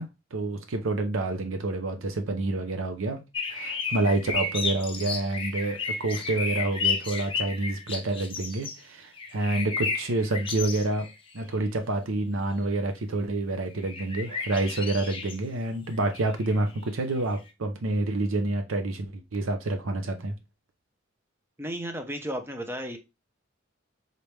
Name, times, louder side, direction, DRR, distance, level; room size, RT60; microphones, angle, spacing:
voice 1, 0.0-3.2 3.5-11.1 11.3-20.3, right 2 dB, 90° right, 0.7 m, -28 dB
sound 1, 3.3-8.8 9.1-11.1 11.4-11.5 13.8-15.4 15.9-16.6 17.2-17.4, left 5 dB, 25° left, 0.8 m, -32 dB
voice 2, 21.6-23.0, equal, 10° right, 0.7 m, -33 dB
4.0 x 3.2 x 3.3 m
head